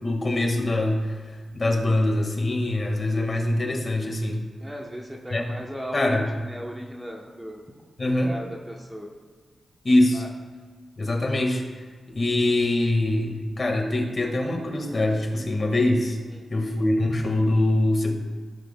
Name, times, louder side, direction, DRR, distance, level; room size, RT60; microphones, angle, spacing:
voice 1, 0.0-4.4 5.3-5.4 5.9-6.3 8.0-8.3 9.8-10.2 11.0-11.6 12.1-16.2 16.5-18.1, left 1 dB, 35° left, 1 dB, 1.6 m, -23 dB
voice 2, 4.6-7.6 8.2-9.1 10.1-10.3 16.3-16.5, equal, 10° right, 0 dB, 0.8 m, -36 dB
16.5 x 7.5 x 2.2 m, 1.5 s
wide cardioid pair, 130°, 0 cm